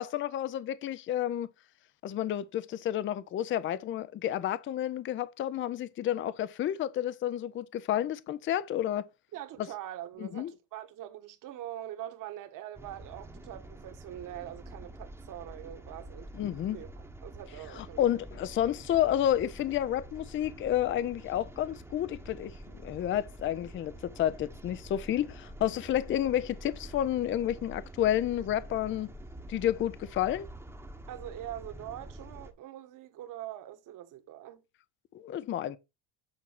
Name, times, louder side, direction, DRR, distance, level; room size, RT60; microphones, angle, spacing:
voice 1, 0.0-1.5 2.0-9.1 10.2-10.5 16.3-16.8 17.7-22.5 22.8-29.1 29.5-30.5 35.1-35.8, left 11 dB, 30° left, 0.5 m, -30 dB
voice 2, 9.3-16.3 16.7-18.0 31.1-34.6, right 12 dB, 50° right, 1.5 m, -43 dB
sound 1, 12.7-32.5, right 1 dB, 5° right, 1.0 m, -47 dB
8.6 x 4.2 x 5.7 m
cardioid pair, 135°, 40 cm